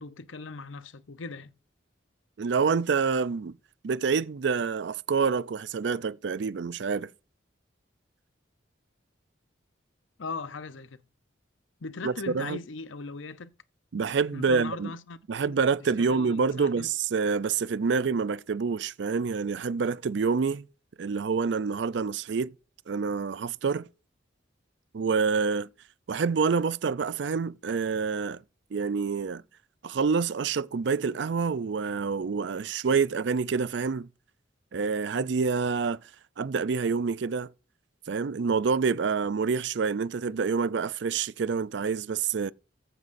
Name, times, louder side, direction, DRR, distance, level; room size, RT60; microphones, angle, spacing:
voice 1, 0.0-1.5 10.2-11.0 11.8-13.5 14.3-16.9, left 4 dB, 85° left, 0.7 m, -39 dB
voice 2, 2.4-3.5 3.8-7.1 12.0-12.6 13.9-14.9 15.3-20.7 21.0-22.5 22.9-23.9 24.9-25.7 26.1-28.4 28.7-29.4 29.8-34.1 34.7-36.0 36.4-37.5 38.1-42.5, right 5 dB, 65° right, 0.4 m, -27 dB
14.5 x 9.0 x 2.6 m
head